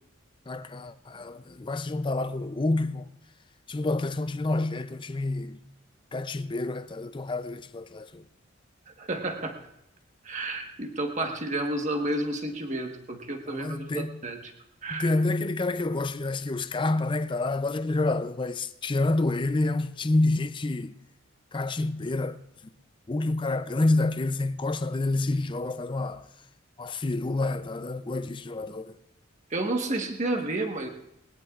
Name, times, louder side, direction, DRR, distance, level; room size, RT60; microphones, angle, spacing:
voice 1, 0.5-3.1 3.7-5.6 6.1-8.2 13.5-14.2 14.9-21.0 21.5-22.4 23.1-26.3 26.8-29.0, left 2 dB, 25° left, 0.5 m, -28 dB
voice 2, 8.9-9.6 10.2-14.5 14.8-15.1 29.5-30.9, right 2 dB, 35° right, 1.3 m, -31 dB
20.5 x 18.0 x 2.4 m
head